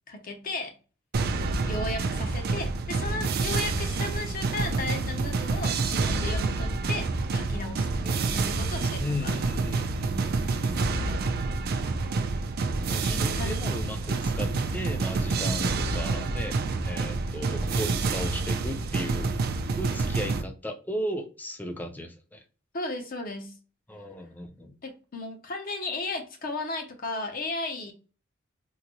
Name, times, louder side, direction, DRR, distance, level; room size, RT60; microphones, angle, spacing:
voice 1, 0.1-0.8 1.7-7.9 8.2-9.3 13.3-13.7 22.7-23.5 24.8-27.9, left 2 dB, 45° left, 0.7 m, -35 dB
sound 1, 1.1-20.4, right 3 dB, 50° right, 0.4 m, -28 dB
voice 2, 8.0-8.4 9.0-10.9 12.9-19.3 19.8-22.4 23.9-24.7, equal, 10° left, 0.5 m, -36 dB
3.8 x 2.1 x 2.9 m
head